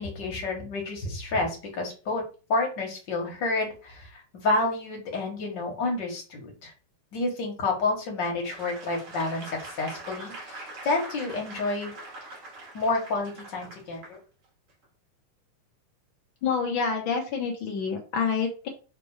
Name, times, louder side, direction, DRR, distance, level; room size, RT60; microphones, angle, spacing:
voice 1, 0.0-2.2 2.5-6.7 7.1-11.9 12.7-14.2, left 3 dB, 40° left, 0 dB, 1.8 m, -29 dB
Applause / Crowd, 8.4-14.2 14.7-14.8, right 2 dB, 50° right, 3.0 m, -43 dB
voice 2, 16.4-18.7, left 5 dB, 70° left, 0 dB, 1.1 m, -27 dB
5.9 x 3.2 x 4.9 m, 0.34 s
omnidirectional pair, 4.0 m